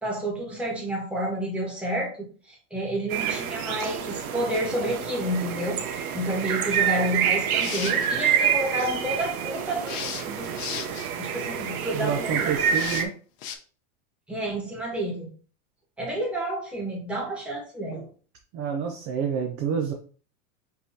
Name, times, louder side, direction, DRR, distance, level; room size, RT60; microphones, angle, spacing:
voice 1, 0.0-2.2 2.5-10.6 11.2-12.5 14.3-15.3 16.0-18.1, right 1 dB, 5° right, -4 dB, 1.4 m, -30 dB
sound 1, 3.1-13.1, right 8 dB, 85° right, 1.0 m, -27 dB
sound 2, 7.5-8.1 9.9-11.1 12.7-13.0 13.4-13.6, left 8 dB, 45° left, 0.8 m, -35 dB
voice 2, 11.9-13.1 18.5-19.9, right 7 dB, 30° right, 3 dB, 0.4 m, -28 dB
5.2 x 3.1 x 2.7 m, 0.40 s
supercardioid pair, 145°, 42 cm